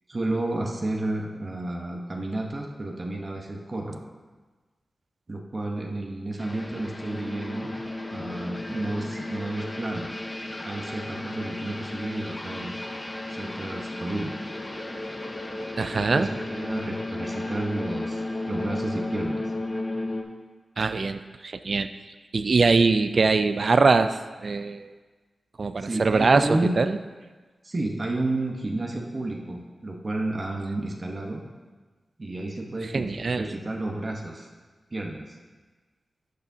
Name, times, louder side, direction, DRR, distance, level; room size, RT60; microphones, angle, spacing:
voice 1, 0.1-4.0 5.3-7.7 8.1-10.1 10.6-12.7 13.3-14.4 15.9-19.4 25.8-26.7 27.6-31.4 32.2-34.5 34.9-35.2, right 2 dB, 40° right, 0 dB, 1.0 m, -31 dB
sound 1, 6.4-20.2, left 2 dB, 25° left, 0.8 m, -34 dB
voice 2, 15.8-16.3 20.8-21.9 22.3-24.9 25.6-27.0 32.9-33.5, right 4 dB, 60° right, 11 dB, 0.3 m, -22 dB
11.5 x 6.7 x 2.7 m, 1.3 s
wide cardioid pair, 80°, 0 cm